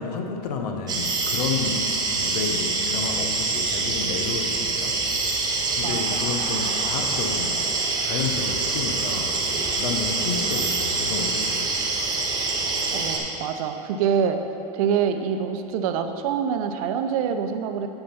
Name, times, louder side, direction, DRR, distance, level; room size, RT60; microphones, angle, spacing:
voice 1, 0.0-1.9 2.1-5.0 5.8-7.6 8.0-9.4 9.8-11.7, left 5 dB, 80° left, 4 dB, 0.9 m, -30 dB
sound 1, 0.9-13.2, right 3 dB, 20° right, 0.9 m, -25 dB
voice 2, 5.8-6.2 12.9-14.4 14.7-17.9, right 7 dB, 65° right, 7 dB, 0.6 m, -25 dB
7.9 x 4.3 x 5.5 m, 2.9 s
supercardioid pair, 130°, 20 cm